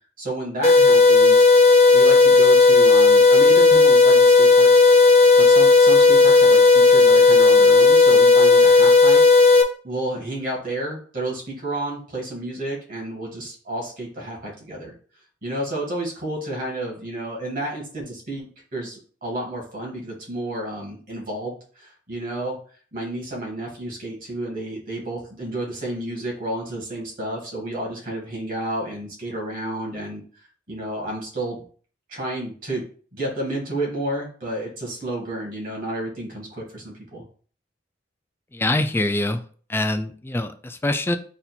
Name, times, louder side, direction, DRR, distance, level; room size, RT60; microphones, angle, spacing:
voice 1, 0.2-1.4 1.9-4.7 5.2-9.2 9.8-14.9 15.4-22.6 22.9-30.2 30.7-31.6 32.1-32.8 33.1-37.2, right 1 dB, 50° right, -1 dB, 2.0 m, -31 dB
sound 1, 0.6-9.6, left 4 dB, 40° left, 0.7 m, -13 dB
voice 2, 38.5-39.4 39.7-41.2, left 1 dB, 15° left, 8 dB, 0.4 m, -24 dB
4.1 x 2.5 x 4.3 m, 0.43 s
head